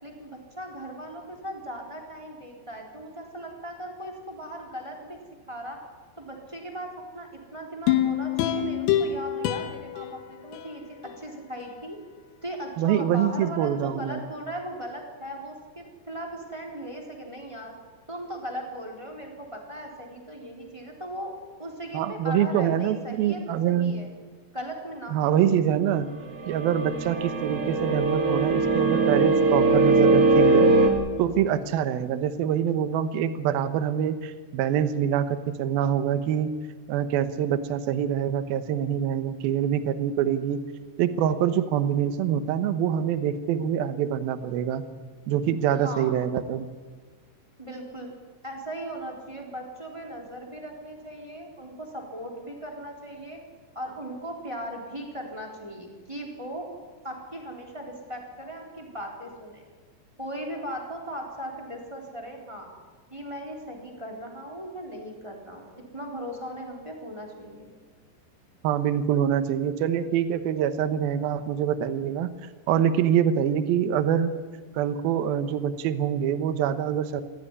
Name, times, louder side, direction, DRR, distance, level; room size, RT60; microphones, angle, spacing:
voice 1, 0.0-5.2 5.5-5.8 6.2-12.0 12.4-17.7 18.1-21.3 21.6-23.4 23.7-24.1 24.5-25.1 45.7-46.1 47.6-48.1 48.4-53.4 53.7-56.7 57.0-59.6 60.2-62.7 63.1-67.7, equal, 5° right, 0 dB, 3.0 m, -38 dB
sound 1, 7.9-11.2 11.6-11.7, left 10 dB, 85° left, 3.9 m, -27 dB
voice 2, 12.8-14.2 21.9-23.9 25.1-26.1 26.5-30.7 31.2-36.5 36.9-40.6 41.0-44.8 45.3-46.7 68.6-72.3 72.7-74.3 74.7-77.2, right 9 dB, 75° right, 11 dB, 2.2 m, -25 dB
sound 2, 26.4-30.9, right 3 dB, 45° right, 2.0 m, -21 dB
25.5 x 15.5 x 9.8 m, 1.5 s
omnidirectional pair, 5.8 m